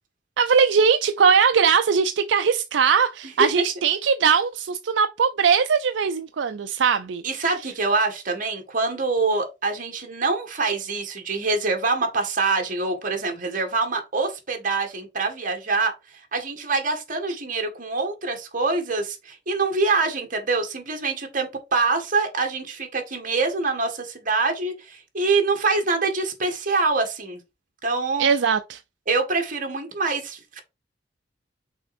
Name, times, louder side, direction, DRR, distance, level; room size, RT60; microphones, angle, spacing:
voice 1, 0.4-7.2 28.2-28.8, right 6 dB, 75° right, 0.5 m, -20 dB
voice 2, 7.2-15.9 16.3-27.4 27.8-28.3 29.1-30.6, right 3 dB, 50° right, 1.8 m, -25 dB
6.2 x 4.4 x 4.2 m
head